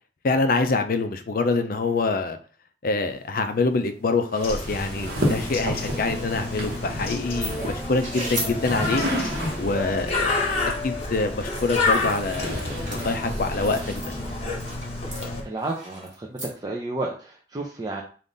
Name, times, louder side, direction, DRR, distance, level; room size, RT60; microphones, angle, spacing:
voice 1, 0.2-2.4 2.8-9.1 9.6-14.0, left 3 dB, 55° left, 8 dB, 0.5 m, -25 dB
sound 1, 4.3-10.0 11.0-14.6, equal, 60° right, 1.2 m, -32 dB
Bird, 4.4-15.4, left 2 dB, 35° left, 0.9 m, -29 dB
sound 2, 7.4-7.5 8.0-8.5 11.4-13.1 13.6-14.1 14.5-14.8 15.1-16.5, right 1 dB, 45° right, 1.9 m, -36 dB
voice 2, 15.4-18.0, right 2 dB, 25° right, -1 dB, 0.5 m, -31 dB
3.6 x 2.5 x 3.9 m, 0.40 s
head